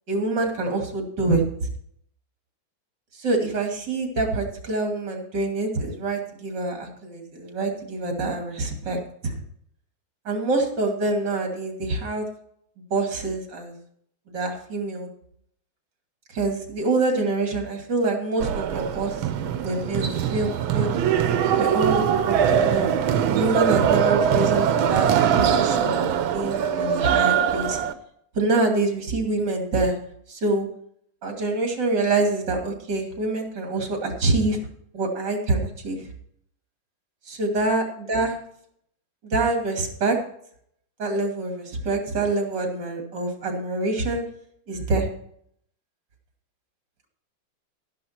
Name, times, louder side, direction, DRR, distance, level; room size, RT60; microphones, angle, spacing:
voice 1, 0.1-1.7 3.1-9.3 10.2-12.2 12.9-13.7 14.3-15.1 16.3-19.3 19.6-20.9 21.6-22.9 23.2-25.1 25.4-27.8 28.3-30.0 30.3-30.7 31.2-34.6 34.9-36.1 37.3-38.4 39.2-40.2 41.0-44.2 44.7-45.1, right 2 dB, 60° right, 2 dB, 3.2 m, -26 dB
sound 1, 18.4-27.9, right 8 dB, 85° right, 1.7 m, -22 dB
12.5 x 11.0 x 4.4 m, 0.68 s
omnidirectional pair, 2.2 m